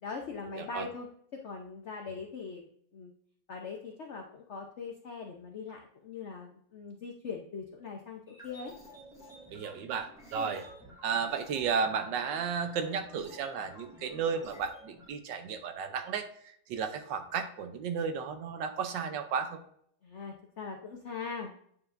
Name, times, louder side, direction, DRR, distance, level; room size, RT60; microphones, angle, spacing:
voice 1, 0.0-3.1 3.5-8.7 10.3-10.6 20.0-21.5, left 5 dB, 70° left, 2 dB, 0.6 m, -41 dB
voice 2, 0.5-0.9 9.5-10.7 11.0-19.6, right 6 dB, 70° right, 8 dB, 1.3 m, -33 dB
sound 1, 8.3-15.1, equal, ahead, 1.9 m, -52 dB
8.9 x 4.8 x 2.5 m, 0.66 s
omnidirectional pair, 2.1 m